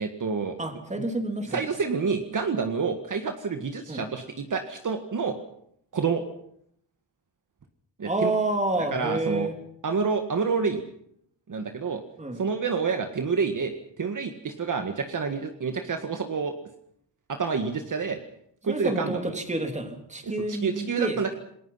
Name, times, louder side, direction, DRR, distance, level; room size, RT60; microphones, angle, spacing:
voice 1, 0.0-0.6 1.5-5.4 5.9-6.2 8.0-8.3 8.9-9.5 9.8-10.8 11.5-12.0 12.4-16.6 17.3-18.2 18.6-19.3 20.2-21.3, right 5 dB, 45° right, 6 dB, 1.9 m, -28 dB
voice 2, 0.6-1.6 3.9-4.0 8.0-9.5 12.2-12.4 18.7-21.2, right 2 dB, 15° right, 5 dB, 3.5 m, -28 dB
28.5 x 21.0 x 5.8 m, 0.69 s
wide cardioid pair, 160°, 42 cm